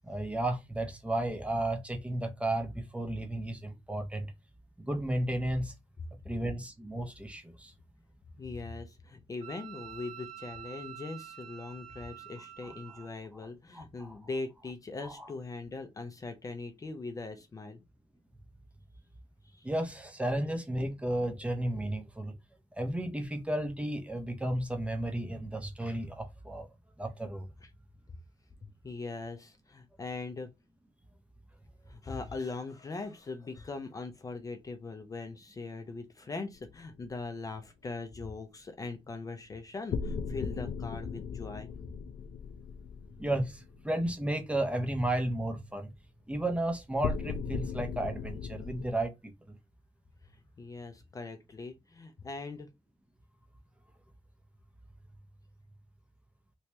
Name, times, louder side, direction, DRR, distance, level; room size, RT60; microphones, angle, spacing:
voice 1, 0.0-4.3 4.8-5.7 6.2-7.7 13.7-14.2 15.0-15.1 19.6-22.3 22.8-26.7 27.0-27.5 43.2-45.9 46.3-49.6, right 1 dB, 10° right, 0.7 m, -33 dB
voice 2, 8.3-17.8 19.4-19.7 27.6-27.7 28.8-30.5 31.9-41.7 50.6-52.7, left 3 dB, 30° left, 0.5 m, -41 dB
Wind instrument woodwind instrument, 9.4-13.1, right 12 dB, 65° right, 1.1 m, -47 dB
sound 1, 36.5-37.1 39.9-44.2 47.0-48.9, left 6 dB, 85° left, 0.4 m, -37 dB
3.0 x 2.9 x 3.3 m
wide cardioid pair, 155°, 12 cm